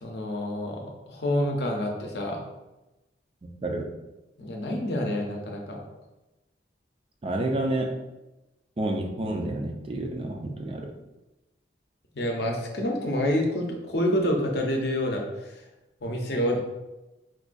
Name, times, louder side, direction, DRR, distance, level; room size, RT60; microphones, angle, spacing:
voice 1, 0.0-2.4 4.4-5.8 12.1-15.5 16.0-16.6, left 1 dB, 60° left, 1 dB, 0.6 m, -28 dB
voice 2, 3.4-3.9 7.2-7.9 8.8-10.9, right 1 dB, 30° right, 2 dB, 0.4 m, -29 dB
4.4 x 2.3 x 2.5 m, 1.0 s
head